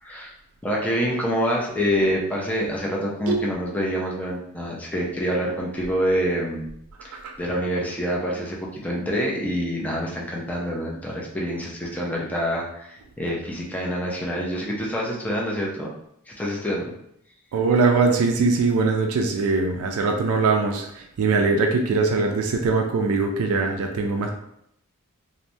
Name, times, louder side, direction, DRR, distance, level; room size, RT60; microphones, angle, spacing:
voice 1, 0.0-0.3 0.6-6.7 7.0-15.9 16.3-16.9, equal, 5° left, -3 dB, 0.5 m, -26 dB
voice 2, 17.5-20.8 21.2-24.3, right 4 dB, 75° right, 3 dB, 0.4 m, -21 dB
3.1 x 2.1 x 2.6 m, 0.74 s
head